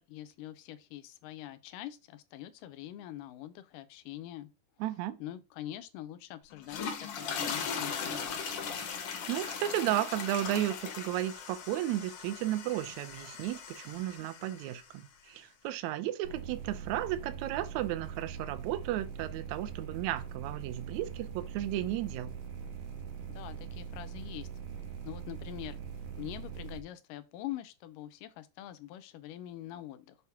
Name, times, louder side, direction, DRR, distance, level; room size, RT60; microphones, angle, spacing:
voice 1, 0.0-4.5 5.2-8.3 23.4-24.5 25.1-25.8 26.2-30.2, left 13 dB, 80° left, 2.2 m, -44 dB
voice 2, 4.8-5.2 9.3-22.3, right 13 dB, 75° right, 1.8 m, -34 dB
sound 1, 6.5-14.8, left 6 dB, 60° left, 1.7 m, -39 dB
sound 2, 16.2-26.8, right 7 dB, 60° right, 1.8 m, -42 dB
6.0 x 5.9 x 3.5 m
omnidirectional pair, 3.9 m